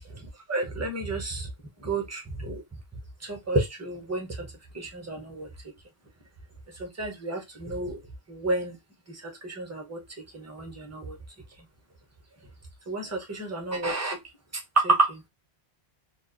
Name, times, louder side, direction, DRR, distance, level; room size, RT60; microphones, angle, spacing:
voice 1, 0.1-1.5 1.8-2.6 3.2-4.5 4.7-5.5 6.8-8.0 8.3-8.8 9.1-10.0 10.3-11.2 12.9-14.2 14.8-15.2, right 2 dB, 20° right, 0.6 m, -30 dB
2.3 x 2.2 x 2.4 m
omnidirectional pair, 1.0 m